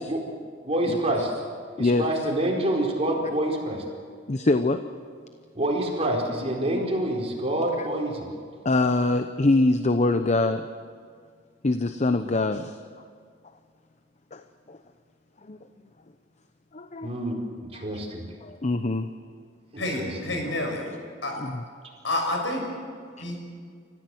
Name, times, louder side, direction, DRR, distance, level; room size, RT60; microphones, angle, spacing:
voice 1, 0.6-1.3 1.8-3.8 5.5-8.3 17.0-17.4 17.7-18.2 19.7-20.1, right 1 dB, 35° right, -1 dB, 4.5 m, -27 dB
voice 2, 4.3-4.8 7.8-7.9 8.6-10.7 11.6-12.8 14.3-14.4 14.7-14.8 15.5-15.6 16.7-17.1 17.7-17.8 18.4-19.1 21.4-21.6, left 2 dB, 40° left, 9 dB, 0.8 m, -24 dB
voice 3, 19.8-20.9 21.2-21.4 22.0-22.6 23.2-23.4, left 1 dB, 85° left, 2 dB, 6.2 m, -28 dB
29.5 x 15.0 x 7.9 m, 2.1 s
head